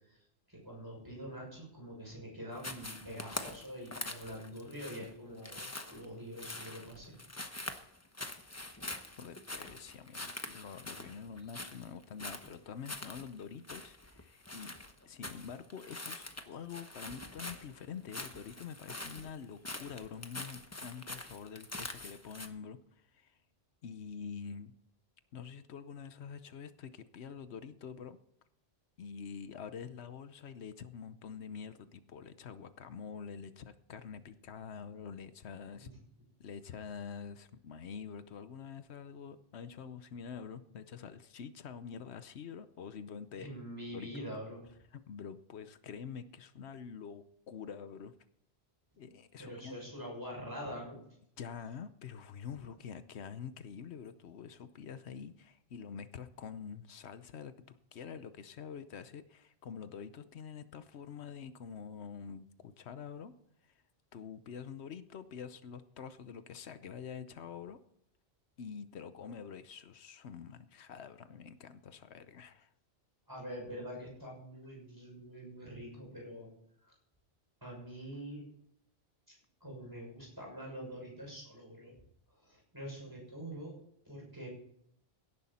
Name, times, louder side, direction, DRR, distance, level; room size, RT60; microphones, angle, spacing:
voice 1, 0.5-7.1 43.4-44.6 49.4-51.0 52.6-52.7 73.3-76.5 76.8-76.9 77.6-78.4 79.6-81.9 82.3-83.7 84.0-84.5, equal, 20° right, -2 dB, 6.4 m, -45 dB
sound 1, 2.6-22.5, left 2 dB, 15° left, 1.0 m, -44 dB
voice 2, 9.2-14.7 15.1-23.4 23.8-24.7 25.3-28.2 29.0-35.9 36.4-43.5 43.9-44.3 44.9-48.1 49.0-49.7 51.4-63.3 63.6-63.7 64.1-67.8 68.6-72.7, left 7 dB, 85° left, 12 dB, 1.1 m, -46 dB
17.0 x 11.0 x 4.2 m, 0.73 s
omnidirectional pair, 1.1 m